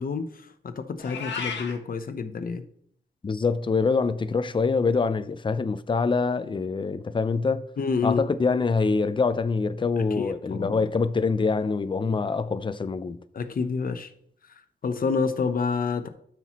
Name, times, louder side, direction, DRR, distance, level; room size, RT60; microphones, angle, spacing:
voice 1, 0.0-2.6 7.8-8.3 10.0-10.8 13.3-14.1 14.8-16.1, left 5 dB, 55° left, 0.9 m, -28 dB
Meow, 1.0-1.8, left 6 dB, 85° left, 1.4 m, -33 dB
voice 2, 3.2-7.6 8.0-13.2, left 4 dB, 30° left, 0.5 m, -25 dB
12.5 x 5.9 x 3.0 m
wide cardioid pair, 110°, 18 cm